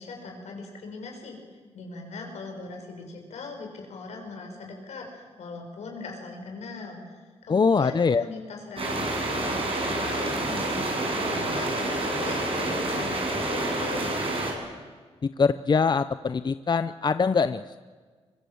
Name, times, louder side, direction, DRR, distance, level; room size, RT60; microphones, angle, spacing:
voice 1, 0.0-1.4 1.7-14.2, left 3 dB, 80° left, 2 dB, 6.3 m, -40 dB
voice 2, 7.5-8.2 15.2-17.8, left 5 dB, 40° left, 12 dB, 0.6 m, -23 dB
sound 1, 8.8-14.5, right 2 dB, 55° right, 7.3 m, -28 dB
24.0 x 22.5 x 7.9 m, 1.5 s
cardioid pair, 70°, 11 cm